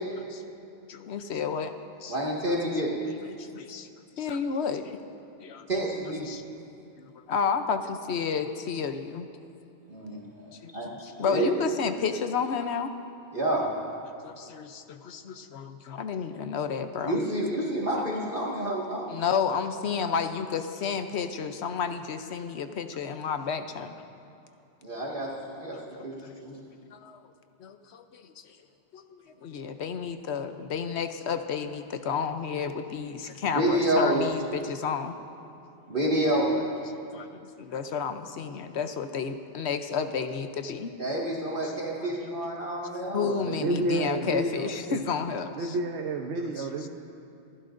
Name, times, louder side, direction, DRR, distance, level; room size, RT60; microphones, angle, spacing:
voice 1, 0.9-1.7 2.0-2.1 2.5-2.6 3.1-3.9 4.2-5.0 5.4-5.6 6.3-6.4 7.0-9.3 10.6-10.7 11.0-12.9 14.2-17.2 18.7-18.8 19.1-23.9 25.7-27.2 27.6-28.6 28.9-35.2 37.1-37.3 37.6-40.9 41.6-41.7 42.0-42.1 43.1-45.7 46.6-46.7, left 6 dB, 75° left, 8 dB, 1.0 m, -31 dB
voice 2, 2.1-2.9 5.7-6.3 9.9-11.7 13.3-13.6 17.0-19.1 24.8-26.6 33.4-34.3 35.9-36.5 41.0-43.3, right 1 dB, 50° right, -5 dB, 2.1 m, -28 dB
voice 3, 43.2-45.0 45.6-46.9, right 2 dB, 80° right, 3 dB, 1.1 m, -30 dB
27.5 x 15.5 x 2.6 m, 2.7 s
omnidirectional pair, 1.2 m